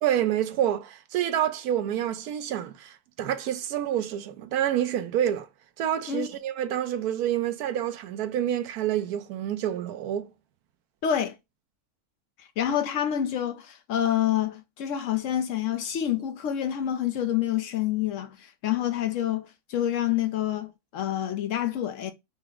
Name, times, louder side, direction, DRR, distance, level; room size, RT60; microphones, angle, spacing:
voice 1, 0.0-5.5 5.8-10.3, right 11 dB, 90° right, 1.1 m, -28 dB
voice 2, 11.0-11.4 12.4-22.1, left 10 dB, 70° left, 0.8 m, -27 dB
5.8 x 2.0 x 3.5 m
omnidirectional pair, 1.6 m